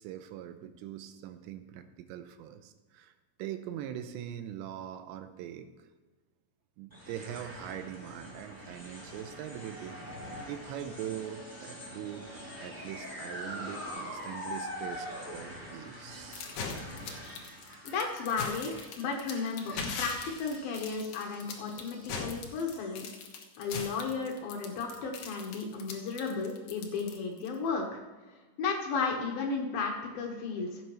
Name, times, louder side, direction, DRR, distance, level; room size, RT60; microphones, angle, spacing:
voice 1, 0.0-3.1 3.4-5.7 6.8-10.0 10.5-16.5, right 11 dB, 85° right, 9 dB, 2.9 m, -42 dB
sound 1, 6.9-23.4, equal, 15° right, 0.7 m, -44 dB
sound 2, 16.3-27.5, left 5 dB, 85° left, 1.6 m, -40 dB
voice 2, 17.8-23.1 23.6-28.0 28.6-30.9, left 4 dB, 65° left, 1 dB, 2.6 m, -34 dB
16.0 x 9.0 x 3.1 m, 1.3 s
omnidirectional pair, 5.2 m